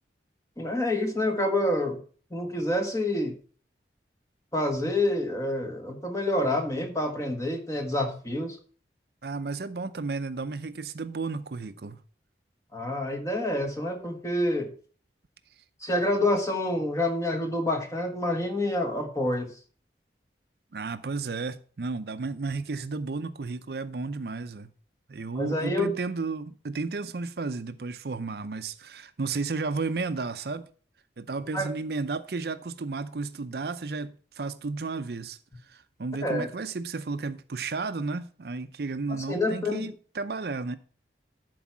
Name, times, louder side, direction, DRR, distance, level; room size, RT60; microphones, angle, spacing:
voice 1, 0.6-2.0 2.3-3.4 4.5-8.6 12.7-14.7 15.8-19.5 25.3-25.9 31.5-31.7 36.2-36.5 39.1-39.9, left 1 dB, 15° left, 1.4 m, -27 dB
voice 2, 9.2-12.0 20.7-24.7 25.1-30.7 31.2-35.4 35.7-40.8, right 3 dB, 60° right, 0.5 m, -33 dB
11.0 x 4.7 x 6.0 m
head